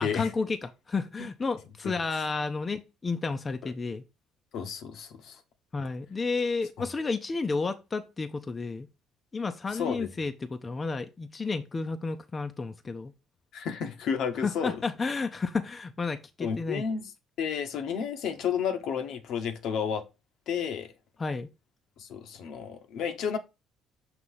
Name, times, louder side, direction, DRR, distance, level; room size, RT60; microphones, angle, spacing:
voice 1, 0.0-4.0 5.7-8.9 9.3-13.1 14.4-16.8 21.2-21.5, left 4 dB, 30° left, 0.6 m, -31 dB
voice 2, 4.5-5.4 6.8-6.9 9.8-10.1 13.5-14.7 16.4-17.0 17.4-20.0 20.5-20.9 22.0-23.4, left 7 dB, 65° left, 0.9 m, -31 dB
6.3 x 2.9 x 5.5 m
hypercardioid pair, 60°, 0 cm